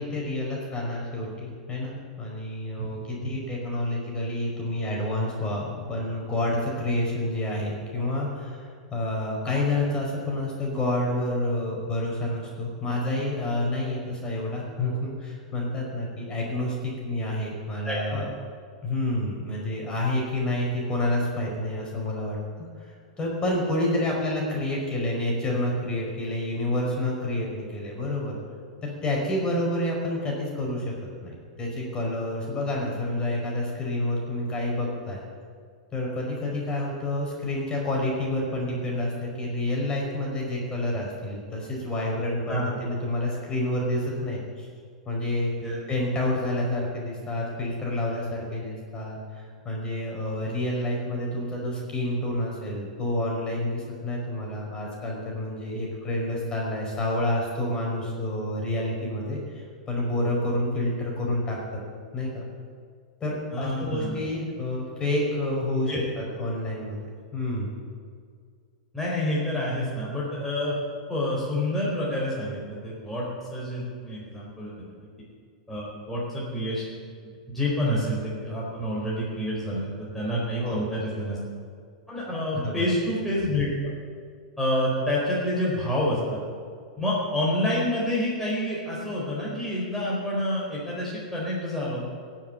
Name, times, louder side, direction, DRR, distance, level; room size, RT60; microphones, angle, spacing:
voice 1, 0.0-18.3 18.8-28.4 28.8-30.9 31.2-35.2 35.9-44.7 45.0-45.5 45.9-61.6 62.1-62.4 63.2-67.0 67.3-67.8 80.6-80.8 82.6-82.8, left 1 dB, 20° left, -2 dB, 5.2 m, -29 dB
voice 2, 17.8-18.2 42.5-42.6 45.6-45.8 63.5-64.2 65.9-66.0 68.9-70.7 71.1-75.1 75.7-76.8 77.5-81.4 82.1-83.9 84.6-86.4 87.0-92.0, left 1 dB, 5° left, -7 dB, 4.5 m, -28 dB
17.0 x 7.5 x 9.4 m, 2.1 s
hypercardioid pair, 120°, 4 cm